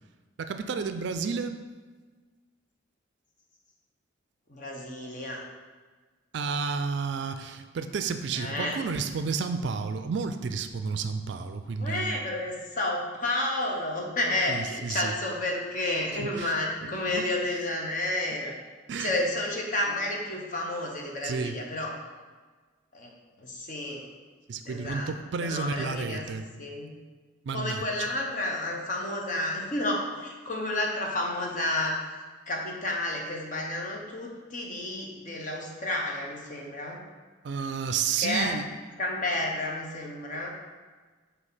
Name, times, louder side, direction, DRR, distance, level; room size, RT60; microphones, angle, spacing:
voice 1, 0.4-1.6 6.3-12.2 14.5-15.1 16.2-16.5 16.8-17.3 18.9-19.1 21.2-21.6 24.5-26.5 27.4-28.1 37.4-38.7, right 5 dB, 60° right, 8 dB, 0.4 m, -31 dB
voice 2, 4.5-5.4 8.3-8.7 11.8-18.5 19.0-22.0 22.9-23.1 23.4-24.1 24.6-25.1 25.4-26.2 26.6-26.9 27.5-31.9 32.5-37.0 38.2-38.5 39.0-40.5, left 1 dB, 40° left, -1 dB, 0.9 m, -31 dB
6.2 x 2.8 x 5.5 m, 1.4 s
head